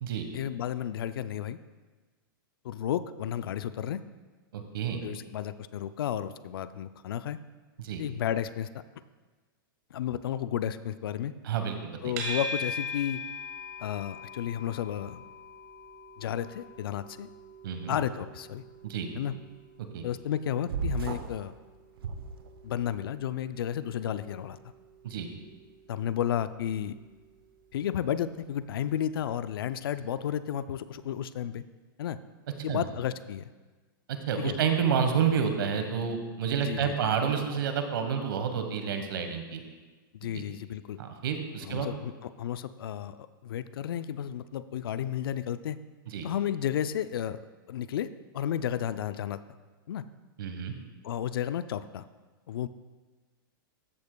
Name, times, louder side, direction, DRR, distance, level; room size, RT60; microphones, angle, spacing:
voice 1, 0.3-1.6 2.6-4.0 5.0-7.4 8.0-8.7 9.9-11.3 12.0-13.2 13.8-15.2 16.2-17.3 17.9-18.6 19.1-19.3 20.0-21.5 22.6-24.6 25.9-27.0 27.7-31.6 32.0-32.2 32.6-33.5 34.4-34.6 36.6-36.9 40.1-41.0 41.6-45.8 46.2-47.4 47.7-48.1 48.3-49.4 49.9-50.0 51.0-52.1 52.5-52.7, left 10 dB, 85° left, 14 dB, 0.4 m, -32 dB
voice 2, 4.5-5.0 7.8-8.0 11.4-12.0 17.6-18.0 18.8-19.1 19.9-20.0 25.0-25.3 32.7-32.8 34.1-39.6 40.3-40.4 41.0-41.9 46.1-46.3 50.4-50.7, right 7 dB, 75° right, 6 dB, 1.2 m, -29 dB
sound 1, 12.2-29.4, left 2 dB, 50° right, 1.5 m, -43 dB
sound 2, 20.7-21.4 22.0-22.9, right 5 dB, 90° right, 0.8 m, -34 dB
13.5 x 8.0 x 2.2 m, 1.3 s
supercardioid pair, 155°, 12 cm